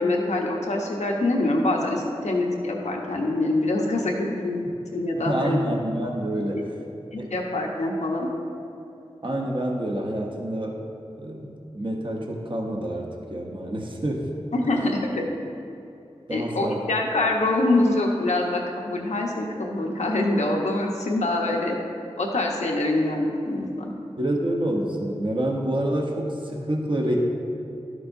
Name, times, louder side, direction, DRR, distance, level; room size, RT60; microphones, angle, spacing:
voice 1, 0.0-4.6 4.9-5.6 7.1-8.3 14.5-15.3 16.3-21.8 22.2-23.9, left 2 dB, 85° left, 0 dB, 0.9 m, -25 dB
voice 2, 5.2-6.7 7.2-7.3 9.2-10.8 11.2-14.3 16.3-16.8 24.2-27.2, right 1 dB, 45° right, -1 dB, 1.0 m, -27 dB
11.5 x 6.4 x 2.6 m, 2.8 s
cardioid pair, 40°, 11 cm